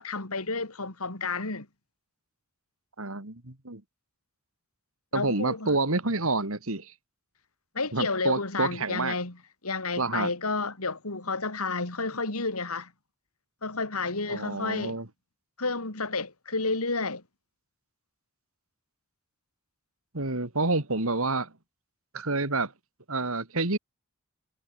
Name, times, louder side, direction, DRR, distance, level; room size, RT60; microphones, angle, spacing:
voice 1, 0.0-1.7 5.1-5.8 7.7-9.4 9.6-12.9 13.6-15.0 15.6-17.2, left 3 dB, 85° left, 3.4 m, -31 dB
voice 2, 3.0-3.8 5.1-6.9 7.9-9.1 10.0-10.3 14.3-15.1 20.1-21.5 22.1-22.7 23.1-23.8, right 3 dB, 75° right, 2.6 m, -28 dB
head